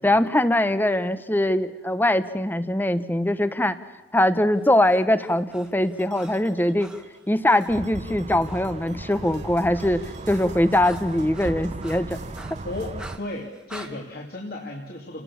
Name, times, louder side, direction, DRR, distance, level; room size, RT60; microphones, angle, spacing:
voice 1, 0.0-3.8 4.1-6.9 7.3-12.2, left 1 dB, 10° left, 13 dB, 0.9 m, -22 dB
Breathing, 4.6-7.8 8.4-8.7 9.0-13.9, right 1 dB, 5° right, 1.3 m, -46 dB
sound 1, 5.9-13.1, right 2 dB, 75° right, 3.7 m, -48 dB
sound 2, 7.7-13.2, right 2 dB, 35° right, 0.7 m, -36 dB
voice 2, 12.6-15.2, left 2 dB, 55° left, 0 dB, 2.5 m, -35 dB
30.0 x 18.5 x 7.1 m, 1.1 s
head